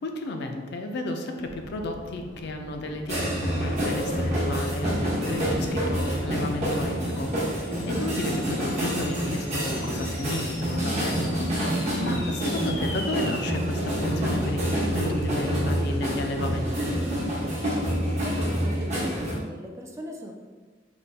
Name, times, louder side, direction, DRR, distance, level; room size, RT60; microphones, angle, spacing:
voice 1, 0.0-17.0, left 2 dB, 65° left, 4 dB, 0.4 m, -33 dB
sound 1, 1.4-6.8, right 1 dB, 60° right, 0.7 m, -43 dB
sound 2, 3.1-19.3, equal, 40° right, 0.9 m, -27 dB
sound 3, 6.4-17.0, left 2 dB, 90° left, 0.8 m, -43 dB
voice 2, 18.2-20.3, equal, 15° right, 2 dB, 0.3 m, -38 dB
4.0 x 2.2 x 3.3 m, 1.4 s
head